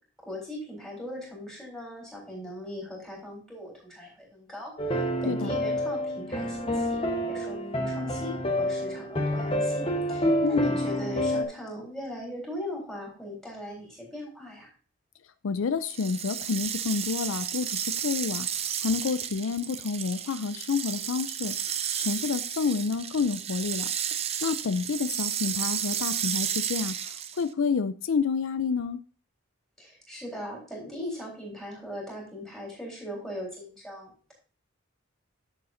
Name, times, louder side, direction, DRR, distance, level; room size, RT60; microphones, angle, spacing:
voice 1, 0.3-7.0 7.3-14.7 29.8-34.3, left 1 dB, ahead, 3.7 m, -39 dB
sound 1, 4.8-11.4, equal, 25° left, 1.0 m, -28 dB
voice 2, 5.3-5.6 10.4-10.6 15.4-18.5 18.8-21.5 22.0-23.9 24.4-26.9 27.4-29.0, left 5 dB, 70° left, 0.4 m, -29 dB
sound 2, 15.9-27.5, right 9 dB, 30° right, 0.4 m, -32 dB
10.5 x 6.9 x 2.6 m
head